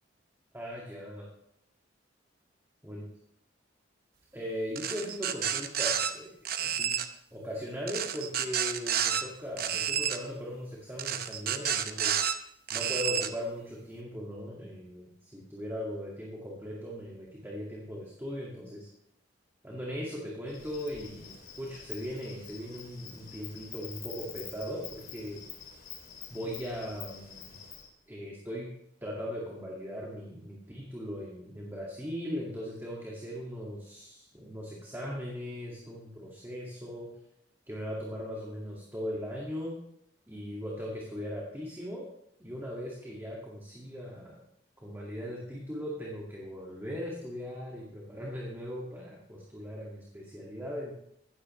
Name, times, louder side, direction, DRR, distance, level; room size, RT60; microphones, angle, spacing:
voice 1, 0.5-1.3 2.8-3.0 4.3-7.0 7.3-12.2 12.7-18.9 19.6-25.4 26.3-27.6 28.1-28.7 29.0-37.1 37.7-39.8 40.3-42.1 42.4-44.4 44.8-50.9, equal, 10° right, -4 dB, 2.2 m, -39 dB
sound 1, 4.8-6.1 6.5-7.1 7.9-9.2 9.6-10.2 11.0-12.3 12.7-13.3, right 9 dB, 55° right, 0.9 m, -30 dB
Insect, 20.5-27.9, left 8 dB, 50° left, 2.4 m, -47 dB
16.5 x 13.5 x 3.3 m, 0.74 s
head